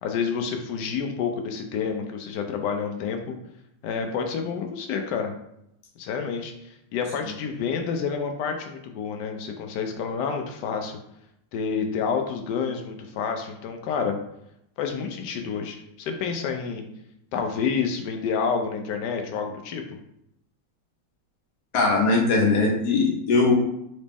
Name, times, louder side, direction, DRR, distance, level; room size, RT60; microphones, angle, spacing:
voice 1, 0.0-3.4 3.8-5.3 6.0-11.0 11.5-14.2 14.8-16.8 17.3-20.0, left 6 dB, 80° left, 4 dB, 0.9 m, -29 dB
voice 2, 21.7-23.5, left 3 dB, 60° left, -1 dB, 1.3 m, -20 dB
4.1 x 3.0 x 3.4 m, 0.79 s
omnidirectional pair, 2.3 m